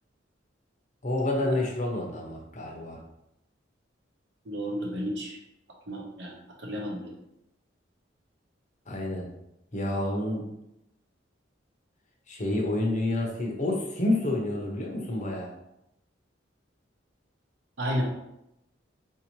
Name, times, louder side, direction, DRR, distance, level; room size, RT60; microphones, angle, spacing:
voice 1, 1.0-3.0 8.9-9.3 9.7-10.5 12.3-15.5, left 1 dB, 40° left, 0 dB, 0.7 m, -29 dB
voice 2, 4.4-5.4 5.9-7.1 17.8-18.0, equal, 65° right, -1 dB, 0.9 m, -32 dB
4.0 x 2.7 x 3.0 m, 0.83 s
head